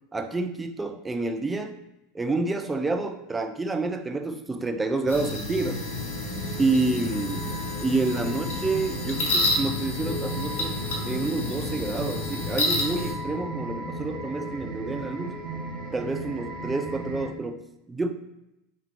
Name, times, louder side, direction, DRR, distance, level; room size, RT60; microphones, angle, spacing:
voice 1, 0.1-1.8 2.1-5.8 6.6-15.4 15.9-18.1, right 3 dB, 10° right, 5 dB, 0.4 m, -29 dB
sound 1, 5.1-13.1, left 2 dB, 60° left, 1.0 m, -30 dB
sound 2, 5.5-17.3, right 2 dB, 40° right, 0.7 m, -36 dB
3.5 x 2.8 x 3.4 m, 0.89 s
figure-of-eight pair, 85°, 0 cm